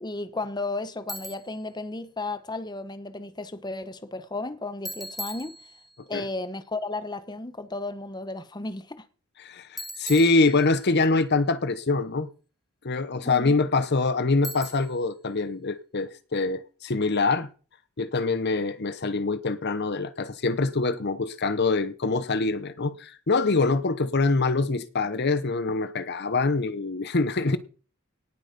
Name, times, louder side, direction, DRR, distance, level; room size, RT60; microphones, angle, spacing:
voice 1, 0.0-5.6 6.1-9.0 13.2-13.6, left 2 dB, 20° left, 1.1 m, -34 dB
Bicycle, 1.1-1.6 4.9-6.1 9.8-11.0 14.4-15.1, equal, ahead, 0.8 m, -39 dB
voice 2, 9.4-12.3 12.8-17.5 18.0-27.6, left 3 dB, 50° left, 0.9 m, -24 dB
18.5 x 8.0 x 5.2 m
head